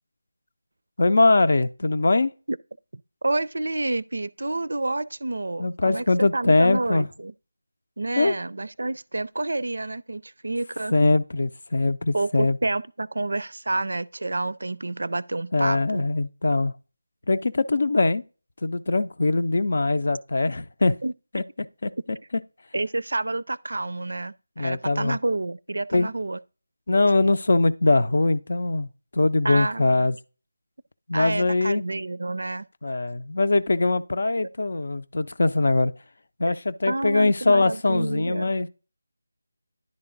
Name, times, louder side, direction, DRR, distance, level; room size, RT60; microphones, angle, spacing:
voice 1, 1.0-2.3 5.6-7.1 8.2-8.3 10.9-12.6 15.5-16.7 17.3-18.2 18.6-20.9 21.3-21.4 21.8-21.9 24.6-25.2 25.9-26.1 26.9-28.9 29.1-30.2 31.1-31.8 32.8-35.9 36.4-38.7, left 2 dB, 55° left, 0.6 m, -22 dB
voice 2, 3.2-7.3 8.0-10.9 12.1-16.0 21.0-21.1 22.7-26.4 29.4-30.1 31.1-32.7 36.5-36.6 36.9-38.5, right 2 dB, 65° right, 0.4 m, -29 dB
10.5 x 3.7 x 3.8 m
figure-of-eight pair, 160°, 0 cm